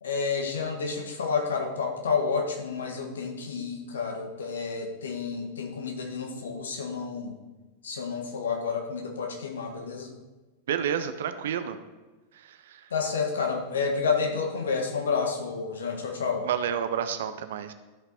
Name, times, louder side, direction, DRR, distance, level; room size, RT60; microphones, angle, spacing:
voice 1, 0.0-7.3 7.8-10.1 12.9-16.5, left 5 dB, 65° left, 3 dB, 1.6 m, -30 dB
voice 2, 10.7-11.8 12.5-12.8 16.4-17.7, right 8 dB, 60° right, 10 dB, 0.7 m, -30 dB
13.0 x 5.5 x 4.2 m, 1.2 s
figure-of-eight pair, 90°, 0 cm